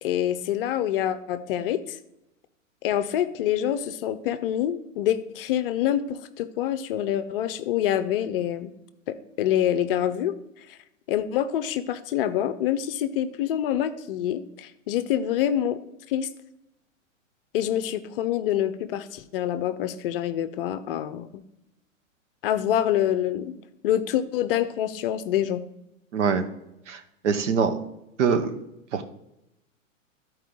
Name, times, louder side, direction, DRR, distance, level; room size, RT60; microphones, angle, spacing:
voice 1, 0.0-2.0 2.8-8.7 9.1-10.4 10.7-10.8 11.1-15.8 16.1-16.3 17.5-21.4 22.4-23.5 23.8-25.6, left 11 dB, 45° left, 11 dB, 0.6 m, -26 dB
voice 2, 26.1-26.5 26.9-27.8 28.2-28.6 28.9-29.1, right 6 dB, 60° right, 8 dB, 1.1 m, -24 dB
13.0 x 4.7 x 3.7 m, 0.88 s
figure-of-eight pair, 105°, 40 cm